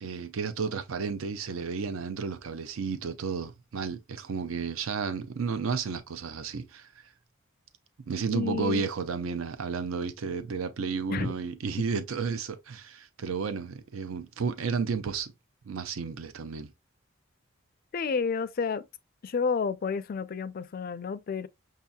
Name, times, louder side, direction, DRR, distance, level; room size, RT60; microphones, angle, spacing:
voice 1, 0.0-6.9 8.1-15.3 15.6-16.7, right 5 dB, 80° right, 0.5 m, -32 dB
voice 2, 8.3-8.9 11.1-11.3 17.9-18.9 19.2-21.5, left 5 dB, 45° left, 0.4 m, -30 dB
6.2 x 2.8 x 2.3 m
head